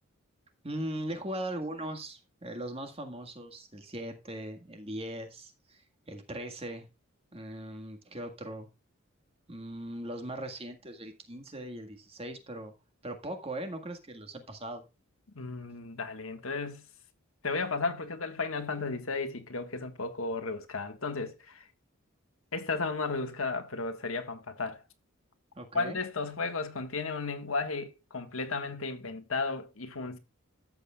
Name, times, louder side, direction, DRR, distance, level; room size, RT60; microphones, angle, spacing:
voice 1, 0.6-6.9 7.3-8.7 9.5-12.7 13.0-14.8 25.6-26.0, right 1 dB, 25° right, 1.7 m, -39 dB
voice 2, 15.4-16.8 17.4-21.7 22.5-24.8 25.7-30.2, left 3 dB, 80° left, 1.6 m, -34 dB
13.0 x 7.9 x 2.4 m
head